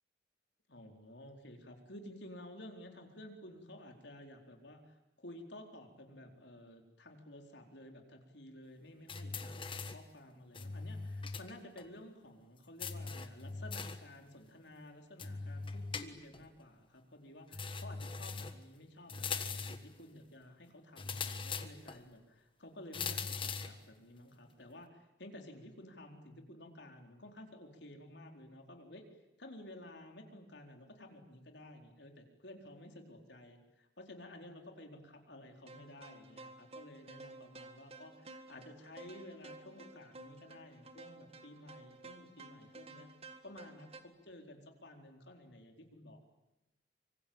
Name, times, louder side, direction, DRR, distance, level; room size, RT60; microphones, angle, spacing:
voice 1, 0.7-29.0 29.4-43.1 43.4-46.2, left 1 dB, 75° left, 3 dB, 4.3 m, -53 dB
sound 1, 9.1-10.1 10.5-11.5 11.8-11.9 12.8-14.1 15.2-16.5 17.5-18.6 19.1-19.9 21.0-22.0 22.9-23.8, left 5 dB, 30° left, 1.5 m, -41 dB
sound 2, 35.7-44.0, right 2 dB, 30° right, 1.9 m, -53 dB
25.5 x 25.0 x 8.8 m, 0.97 s
head